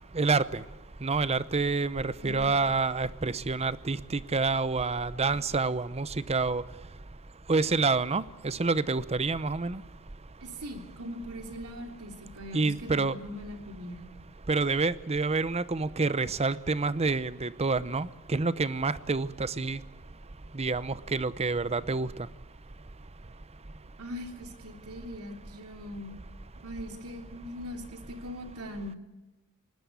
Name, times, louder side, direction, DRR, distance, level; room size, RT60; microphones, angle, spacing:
voice 1, 0.1-0.6 1.0-6.6 7.5-9.8 12.5-13.1 14.5-19.8 20.5-22.1, right 3 dB, 30° right, 16 dB, 0.7 m, -28 dB
voice 2, 10.4-14.1 24.0-26.2 26.6-28.9, equal, 85° right, 4 dB, 3.2 m, -41 dB
20.5 x 19.5 x 8.4 m, 1.1 s
head